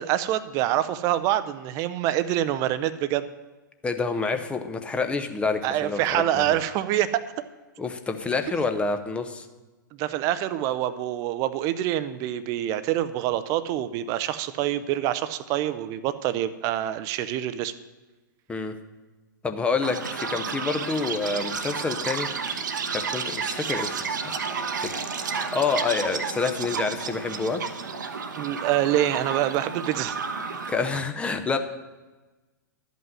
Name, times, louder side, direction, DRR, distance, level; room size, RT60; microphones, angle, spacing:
voice 1, 0.0-3.3 5.6-7.2 10.0-17.7 28.4-30.1, right 12 dB, 30° right, 13 dB, 0.6 m, -26 dB
voice 2, 3.8-6.6 7.8-9.5 18.5-18.7 19.4-22.3 22.9-24.3 25.3-27.6 30.7-31.6, left 4 dB, 10° left, 7 dB, 0.7 m, -28 dB
Chirp tweet, 19.8-31.0, right 5 dB, 65° right, 0.9 m, -31 dB
12.0 x 5.5 x 7.6 m, 1.2 s
figure-of-eight pair, 105°, 11 cm